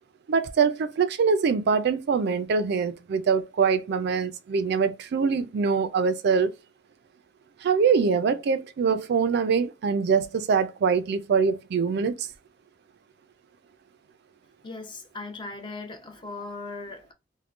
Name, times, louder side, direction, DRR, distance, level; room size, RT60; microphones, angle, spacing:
voice 1, 0.3-6.5 7.6-12.3, right 5 dB, 60° right, 0.4 m, -24 dB
voice 2, 14.6-17.1, left 3 dB, 25° left, 0.6 m, -38 dB
3.6 x 2.1 x 2.4 m
head